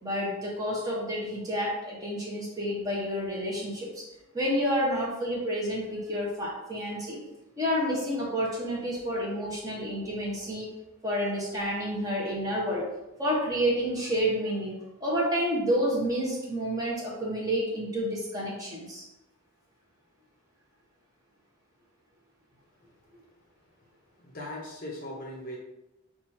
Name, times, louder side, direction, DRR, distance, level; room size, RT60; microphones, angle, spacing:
voice 1, 0.0-4.0 4.3-7.2 7.6-10.7 11.0-12.8 13.2-14.7 15.0-19.0, equal, 15° right, -5 dB, 0.8 m, -29 dB
voice 2, 24.2-25.6, left 1 dB, 40° left, -2 dB, 0.6 m, -39 dB
3.0 x 2.4 x 4.1 m, 0.95 s
head